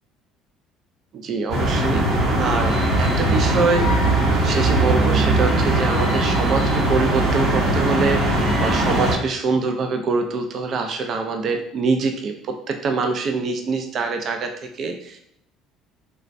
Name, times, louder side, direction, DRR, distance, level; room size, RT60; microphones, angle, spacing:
voice 1, 1.1-4.1 4.3-15.2, right 4 dB, 50° right, 5 dB, 0.3 m, -25 dB
sound 1, 1.5-9.1, right 1 dB, 65° right, 0.9 m, -20 dB
3.2 x 2.1 x 2.5 m, 0.76 s
supercardioid pair, 85°, 0 cm